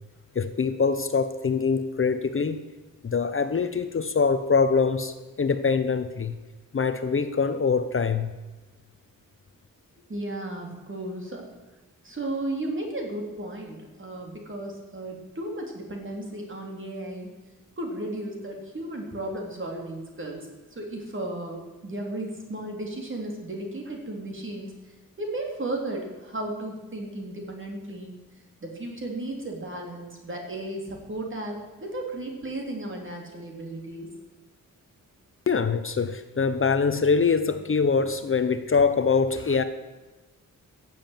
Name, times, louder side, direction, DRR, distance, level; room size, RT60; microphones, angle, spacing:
voice 1, 0.3-2.6 3.0-6.3 6.7-8.3 35.5-39.6, left 5 dB, 40° left, 11 dB, 0.8 m, -24 dB
voice 2, 10.1-11.5 12.0-17.3 17.8-24.7 25.2-28.1 28.6-34.1, right 1 dB, 35° right, 1 dB, 3.6 m, -34 dB
15.5 x 7.6 x 9.1 m, 1.2 s
wide cardioid pair, 135°, 33 cm